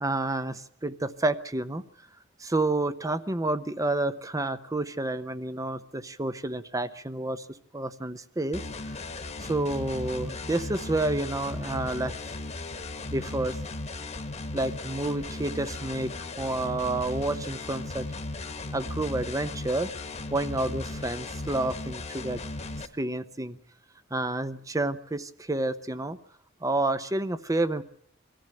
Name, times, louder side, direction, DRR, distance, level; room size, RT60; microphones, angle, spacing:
voice 1, 0.0-1.8 2.4-7.5 7.7-9.0 9.4-12.4 13.1-13.6 14.5-18.0 18.7-19.9 20.3-22.4 23.0-23.6 24.1-26.2 26.6-27.8, right 2 dB, 15° right, 12 dB, 0.8 m, -29 dB
sound 1, 8.5-22.9, left 2 dB, 35° left, 1.4 m, -36 dB
22.5 x 14.0 x 9.0 m, 0.66 s
head